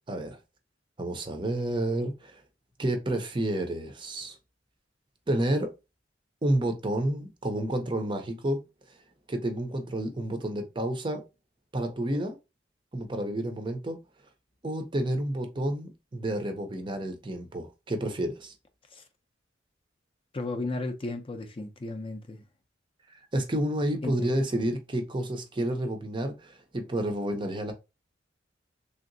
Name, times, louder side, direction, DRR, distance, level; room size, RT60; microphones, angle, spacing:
voice 1, 0.1-0.4 1.0-2.4 2.8-4.4 5.3-5.7 6.4-8.6 9.3-11.2 11.7-12.4 12.9-14.0 14.6-18.5 23.1-27.7, right 1 dB, 25° right, 0.5 m, -30 dB
voice 2, 20.3-22.4 24.0-24.3, left 2 dB, 30° left, 0.4 m, -34 dB
3.3 x 2.8 x 2.5 m
head